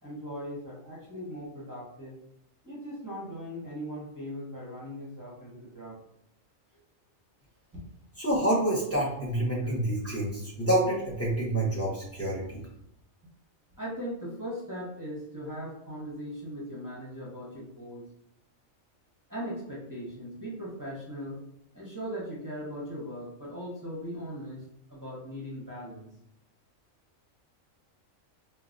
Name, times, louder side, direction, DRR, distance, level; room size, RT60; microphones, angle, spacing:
voice 1, 0.0-2.2 2.6-6.0 13.8-18.1 19.3-21.4 21.7-24.6 24.9-26.1, equal, 15° right, -7 dB, 0.9 m, -39 dB
voice 2, 8.2-12.6, right 1 dB, 10° left, -5 dB, 0.9 m, -28 dB
4.7 x 2.5 x 2.6 m, 0.76 s
omnidirectional pair, 1.4 m